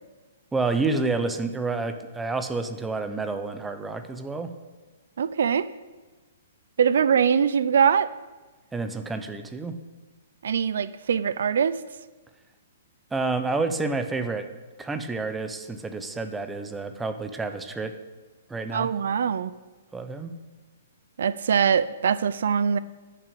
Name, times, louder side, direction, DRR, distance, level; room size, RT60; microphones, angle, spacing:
voice 1, 0.5-4.5 8.7-9.8 13.1-14.5 14.8-18.0 18.5-18.9 19.9-20.3, right 3 dB, 5° right, 8 dB, 0.6 m, -29 dB
voice 2, 5.2-5.7 6.8-8.1 10.4-11.8 18.7-19.5 21.2-22.8, right 7 dB, 70° right, 16 dB, 0.4 m, -22 dB
11.0 x 5.9 x 8.5 m, 1.3 s
hypercardioid pair, 160°, 0 cm